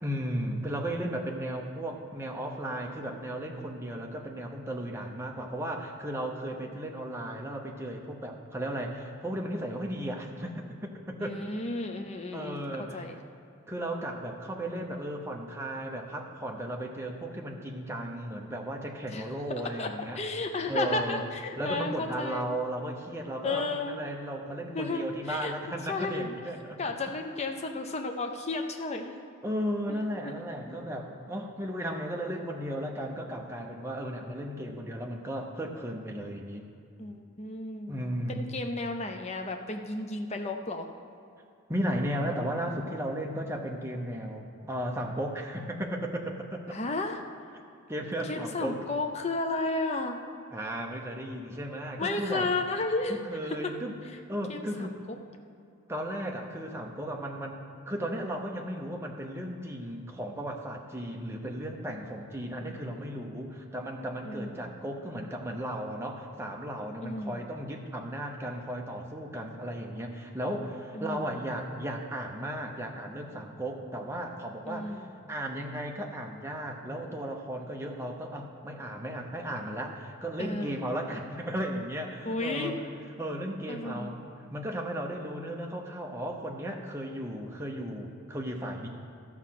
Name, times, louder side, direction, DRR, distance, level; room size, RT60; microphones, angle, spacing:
voice 1, 0.0-11.4 12.3-13.1 13.7-20.2 20.6-21.2 21.6-26.8 29.4-36.7 37.9-38.5 41.7-46.7 47.9-48.8 50.5-52.5 53.1-53.9 54.3-55.0 55.9-82.8 83.2-84.2 84.5-88.9, right 1 dB, 10° right, 1 dB, 0.8 m, -35 dB
voice 2, 11.2-13.2 19.1-19.3 19.8-19.9 20.1-22.6 23.4-24.0 24.7-25.5 25.9-26.3 26.8-29.1 29.9-30.3 30.7-30.8 37.0-40.9 46.7-47.2 48.2-50.2 52.0-53.2 53.5-53.7 54.5-55.2 62.6-63.1 64.2-64.7 67.0-67.4 70.9-71.4 74.6-75.1 80.4-80.8 82.3-82.8 83.7-84.1, left 3 dB, 30° left, 4 dB, 0.5 m, -33 dB
13.0 x 6.2 x 5.8 m, 2.5 s
head